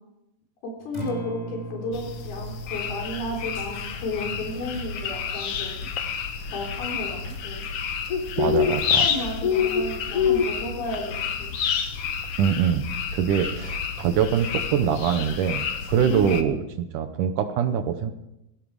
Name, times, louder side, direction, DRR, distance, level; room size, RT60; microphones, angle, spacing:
voice 1, 0.6-5.9 6.5-7.6 8.4-11.5 16.1-16.4, left 1 dB, 85° left, 0 dB, 5.8 m, -33 dB
Acoustic guitar, 0.8-9.0, right 2 dB, 15° left, 2.0 m, -42 dB
sound 1, 1.9-16.4, left 7 dB, 70° left, 1.4 m, -28 dB
sound 2, 4.2-5.1 6.2-7.7, left 1 dB, 50° left, 7.3 m, -45 dB
voice 2, 8.4-9.1 12.4-12.9 13.1-18.1, right 8 dB, 70° right, 9 dB, 2.1 m, -24 dB
17.0 x 16.5 x 4.8 m, 0.85 s
omnidirectional pair, 4.3 m